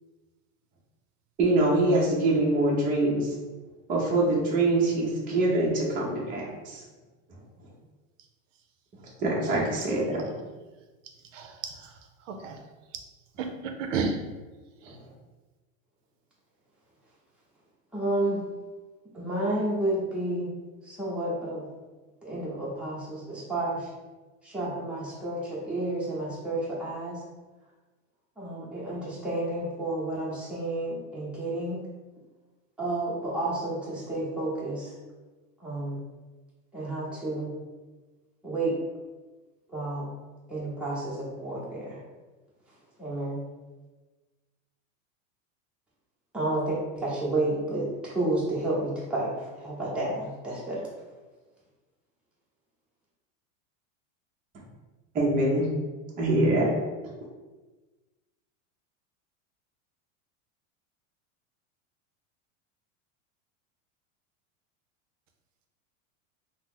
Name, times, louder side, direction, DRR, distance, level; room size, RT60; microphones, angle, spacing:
voice 1, 1.4-3.3 3.9-6.8 9.2-10.3 55.1-55.7 56.2-56.7, right 2 dB, 20° right, -4 dB, 0.6 m, -24 dB
voice 2, 11.3-11.9 12.3-12.6 13.4-14.2 14.8-15.0, right 4 dB, 75° right, 4 dB, 0.5 m, -32 dB
voice 3, 17.9-18.4 19.1-20.5 20.8-21.7 22.2-23.9 24.4-27.2 28.4-31.8 32.8-34.9 35.6-36.0 36.7-37.5 38.4-38.8 39.7-40.1 40.5-42.0 43.0-43.4 46.3-50.9, right 2 dB, 5° right, -7 dB, 0.9 m, -31 dB
2.9 x 2.0 x 3.7 m, 1.2 s
supercardioid pair, 135°, 39 cm